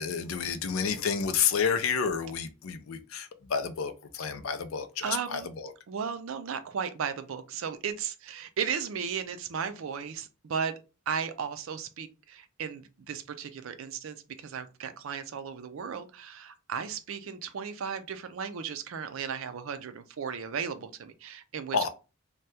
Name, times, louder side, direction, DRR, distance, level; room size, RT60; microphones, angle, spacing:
voice 1, 0.0-5.7 21.7-21.9, left 6 dB, 75° left, 0.5 m, -30 dB
voice 2, 5.0-5.5 5.9-10.8 11.1-21.9, right 6 dB, 70° right, 0.4 m, -35 dB
2.7 x 2.2 x 3.3 m
head